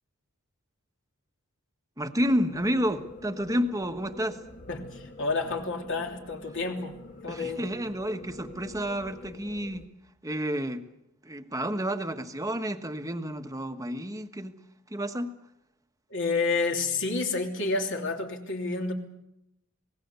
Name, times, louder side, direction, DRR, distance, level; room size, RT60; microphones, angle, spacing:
voice 1, 2.0-4.4 7.3-9.8 10.2-10.8 11.2-14.6 14.9-15.3, equal, 15° right, 1.3 m, -30 dB
sound 1, 2.2-9.9, left 2 dB, 35° left, 1.6 m, -47 dB
voice 2, 4.7-7.0 7.2-7.7 16.1-18.9, left 3 dB, 60° left, 3.1 m, -29 dB
26.5 x 19.0 x 6.9 m
head